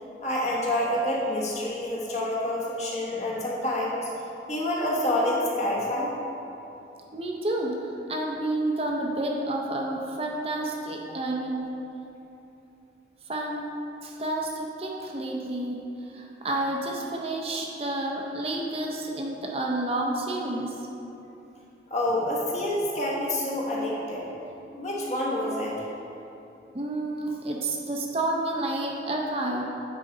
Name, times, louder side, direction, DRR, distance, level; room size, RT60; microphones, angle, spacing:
voice 1, 0.2-4.1 4.5-6.1 21.9-24.3 24.7-25.7, left 1 dB, 40° left, -4 dB, 1.1 m, -27 dB
voice 2, 7.1-7.8 8.1-11.7 13.3-13.7 14.0-15.8 16.1-20.7 26.7-29.7, right 1 dB, 35° right, -1 dB, 0.6 m, -30 dB
9.1 x 4.0 x 3.8 m, 2.9 s
head